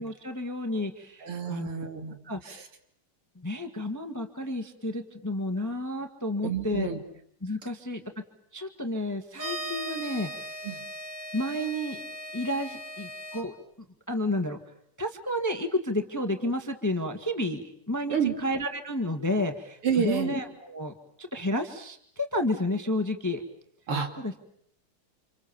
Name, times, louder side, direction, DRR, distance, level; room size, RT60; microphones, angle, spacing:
voice 1, 0.0-1.7 2.2-2.6 3.3-6.9 7.4-8.0 8.5-10.5 11.3-12.0 12.3-13.5 14.1-14.6 15.0-23.4 24.2-24.3, left 1 dB, 10° left, 6 dB, 1.5 m, -31 dB
voice 2, 1.2-2.2 2.5-2.6 6.4-7.0 10.6-10.8 18.1-18.4 19.8-20.3 23.9-24.1, right 7 dB, 85° right, 5 dB, 3.8 m, -29 dB
sound 1, 9.3-13.4, equal, 35° right, 5.3 m, -38 dB
30.0 x 27.5 x 7.1 m, 0.67 s
omnidirectional pair, 2.4 m